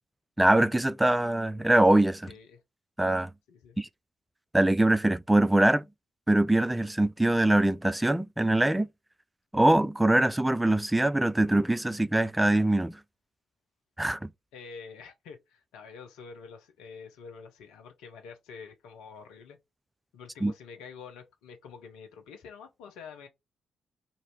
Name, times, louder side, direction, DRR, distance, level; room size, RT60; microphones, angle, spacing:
voice 1, 0.4-2.3 3.0-3.3 3.8-3.9 4.5-5.8 6.3-8.9 9.5-13.0 14.0-14.3 20.4-20.5, right 1 dB, 10° right, 0.4 m, -23 dB
voice 2, 2.3-2.6 3.5-3.8 14.5-19.6 20.1-23.3, left 5 dB, 75° left, 0.7 m, -47 dB
3.1 x 2.7 x 4.5 m
hypercardioid pair, 40°, 0 cm